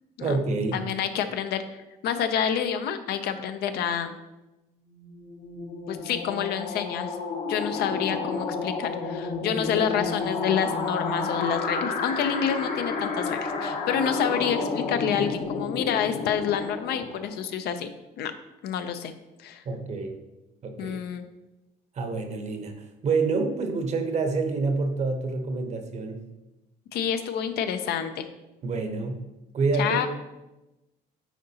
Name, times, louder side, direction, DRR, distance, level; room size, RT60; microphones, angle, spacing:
voice 1, 0.2-0.8 19.6-20.2 20.6-20.9 21.9-26.2 28.6-29.2 29.5-30.1, right 4 dB, 40° right, 6 dB, 0.8 m, -27 dB
voice 2, 0.7-1.6 2.0-4.2 5.9-7.1 7.5-17.9 18.2-18.3 18.6-19.1 19.4-19.6 20.8-21.2 26.9-28.2 29.7-30.1, left 8 dB, 75° left, 9 dB, 0.5 m, -28 dB
sound 1, 4.9-17.5, left 4 dB, 45° left, 0.8 m, -31 dB
9.2 x 3.8 x 2.8 m, 1.0 s
cardioid pair, 110°, 17 cm